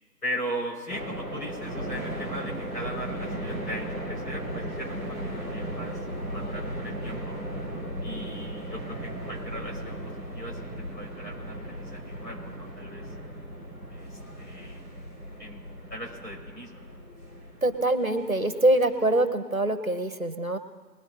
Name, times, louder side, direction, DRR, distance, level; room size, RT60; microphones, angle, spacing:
voice 1, 0.2-7.4 8.0-10.0 10.3-10.6 10.9-13.1 13.9-14.8 15.4-15.6 15.9-17.0, equal, 75° left, -2 dB, 5.8 m, -38 dB
sound 1, 0.9-19.2, right 1 dB, 60° left, 5.4 m, -36 dB
voice 2, 17.6-20.6, right 1 dB, 55° right, 10 dB, 1.1 m, -24 dB
20.0 x 16.0 x 2.9 m, 1.4 s
figure-of-eight pair, 180°, 50 cm